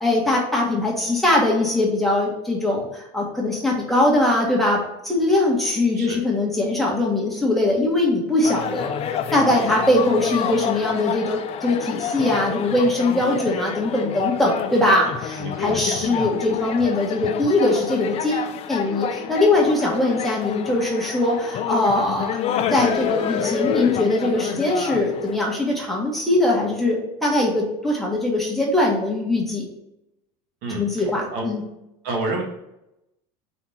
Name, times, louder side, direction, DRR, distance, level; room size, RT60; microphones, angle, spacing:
voice 1, 0.0-4.8 5.0-8.9 9.3-22.4 22.7-29.7 30.7-31.6, left 2 dB, ahead, -3 dB, 1.6 m, -21 dB
sound 1, 8.4-25.4, left 8 dB, 40° left, 0.6 m, -28 dB
voice 2, 15.4-16.1 30.6-31.0 31.3-31.5 32.0-32.4, right 2 dB, 65° right, 1 dB, 1.7 m, -29 dB
4.9 x 4.2 x 5.7 m, 0.87 s
supercardioid pair, 135°, 16 cm